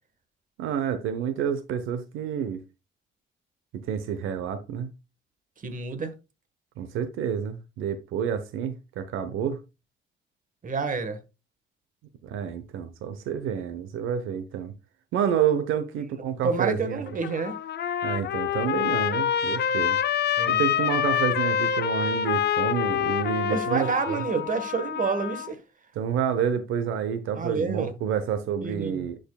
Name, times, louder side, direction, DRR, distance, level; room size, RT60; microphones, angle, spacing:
voice 1, 0.6-2.6 3.7-4.9 6.8-9.6 12.2-14.7 15.1-17.0 18.0-20.0 20.5-24.2 26.0-29.2, right 8 dB, 90° right, 0.9 m, -29 dB
voice 2, 5.6-6.1 10.6-11.2 16.0-16.1 16.4-17.6 20.4-20.6 23.5-25.6 27.4-27.9 28.6-29.1, right 4 dB, 40° right, 1.4 m, -29 dB
Trumpet, 17.1-25.5, left 9 dB, 60° left, 0.6 m, -26 dB
10.5 x 5.2 x 2.3 m
cardioid pair, 90°, 20 cm